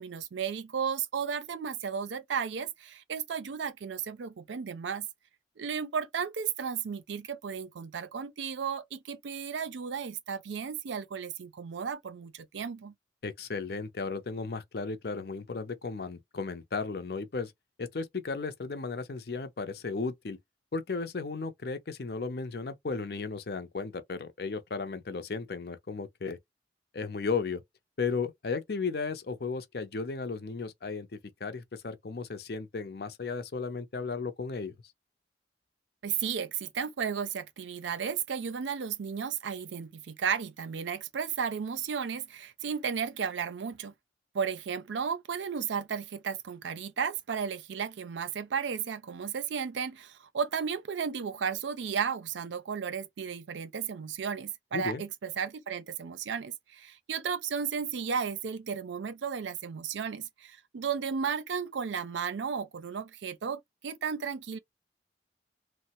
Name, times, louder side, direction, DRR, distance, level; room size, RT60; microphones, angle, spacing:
voice 1, 0.0-5.1 5.6-12.9 36.0-43.9 44.3-64.6, right 7 dB, 80° right, 0.4 m, -34 dB
voice 2, 13.2-17.5 17.8-20.4 20.7-26.4 26.9-27.6 28.0-31.1 31.4-34.8 54.7-55.0, left 4 dB, 55° left, 0.5 m, -35 dB
3.1 x 2.1 x 2.9 m
head